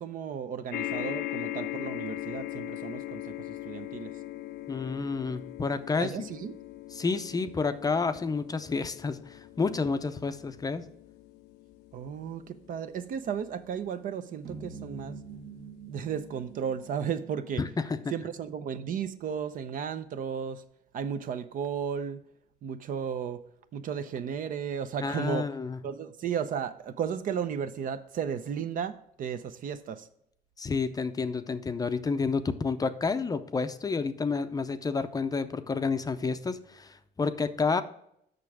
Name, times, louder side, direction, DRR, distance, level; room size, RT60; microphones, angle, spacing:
voice 1, 0.0-4.1 6.0-6.5 11.9-15.2 15.9-17.6 18.1-20.6 20.9-22.2 22.6-23.4 23.7-25.5 25.8-30.1, right 7 dB, 55° right, 11 dB, 0.6 m, -34 dB
sound 1, 0.7-15.3 16.0-16.1 16.4-16.5, left 14 dB, 85° left, 0.5 m, -40 dB
voice 2, 4.7-6.3 6.9-10.9 17.6-18.0 25.0-25.8 30.6-37.8, left 4 dB, 20° left, 10 dB, 0.5 m, -30 dB
sound 2, 14.4-18.8, right 4 dB, 70° right, 1.5 m, -46 dB
6.8 x 6.1 x 4.7 m, 0.72 s
cardioid pair, 110°, 17 cm